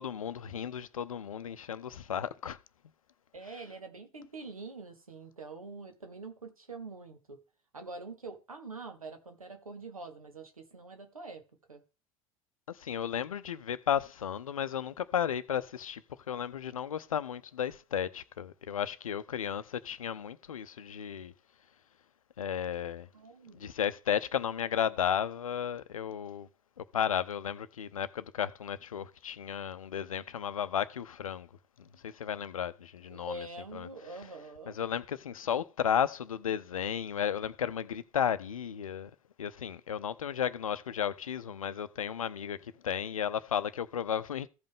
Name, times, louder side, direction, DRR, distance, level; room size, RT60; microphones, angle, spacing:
voice 1, 0.0-2.6 12.7-16.0 16.3-21.3 22.4-23.1 23.5-26.5 26.8-31.5 31.8-33.5 33.7-33.9 34.7-39.1 39.4-44.5, left 9 dB, 80° left, 0.6 m, -34 dB
voice 2, 3.3-7.4 7.7-11.4 11.7-11.8 23.1-23.7 33.1-34.8, right 3 dB, 85° right, 1.4 m, -45 dB
15.0 x 5.3 x 3.6 m
figure-of-eight pair, 70°, 18 cm